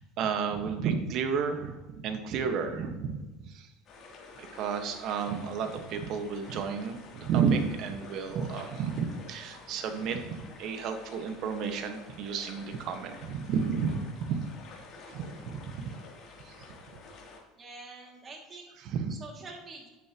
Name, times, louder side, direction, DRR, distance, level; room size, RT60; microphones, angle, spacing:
voice 1, 0.2-3.7 4.4-10.2 10.6-14.5 15.1-15.9 16.5-16.6 18.8-19.2, right 6 dB, 55° right, 6 dB, 1.5 m, -32 dB
sound 1, 3.9-17.4, left 3 dB, 45° left, 3.1 m, -49 dB
voice 2, 17.6-18.8 19.1-19.9, right 3 dB, 30° right, 1 dB, 2.5 m, -46 dB
10.5 x 9.7 x 3.0 m, 1.1 s
supercardioid pair, 120°, 0 cm